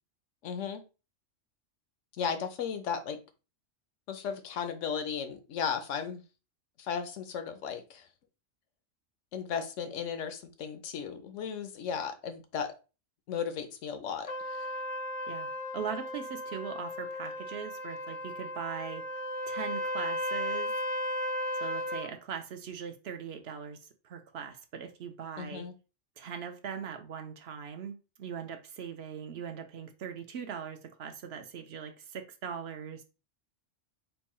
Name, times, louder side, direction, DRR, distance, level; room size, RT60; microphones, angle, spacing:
voice 1, 0.4-0.8 2.1-3.2 4.1-6.2 6.8-8.1 9.3-12.7 13.3-14.8 25.4-25.7, left 7 dB, 80° left, 1.0 m, -35 dB
Trumpet, 14.3-22.1, left 1 dB, 40° left, 0.5 m, -35 dB
voice 2, 15.7-19.0 19.5-20.7 21.6-25.7 26.2-33.0, right 7 dB, 65° right, 0.8 m, -40 dB
4.5 x 2.2 x 4.2 m
omnidirectional pair, 1.3 m